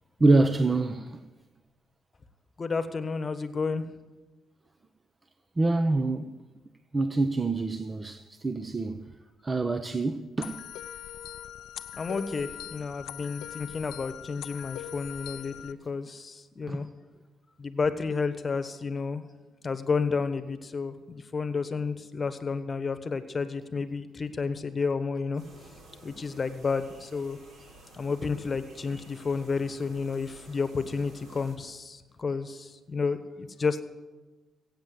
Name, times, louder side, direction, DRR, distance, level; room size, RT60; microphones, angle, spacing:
voice 1, 0.2-1.2 5.6-6.4 6.9-9.1 9.4-10.6 16.7-16.9, right 2 dB, 25° right, 0.7 m, -26 dB
voice 2, 2.6-3.9 11.9-16.9 17.6-19.2 19.6-25.4 26.0-27.4 28.0-33.8, left 4 dB, 35° left, 1.2 m, -31 dB
sound 1, 10.4-15.7, left 11 dB, 85° left, 0.4 m, -41 dB
sound 2, 25.4-31.6, right 1 dB, 60° right, 4.3 m, -52 dB
16.5 x 8.9 x 7.8 m
cardioid pair, 90°, 0 cm